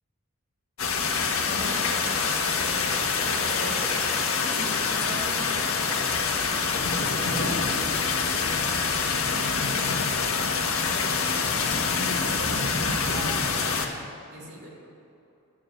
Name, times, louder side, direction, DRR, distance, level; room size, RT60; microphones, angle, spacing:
sound 1, 0.8-13.9, left 5 dB, 70° left, 1.4 m, -26 dB
voice 1, 0.9-9.6 9.9-10.3 10.8-11.9 12.3-14.7, right 1 dB, 55° right, -2 dB, 2.9 m, -41 dB
13.0 x 7.1 x 8.0 m, 2.7 s
head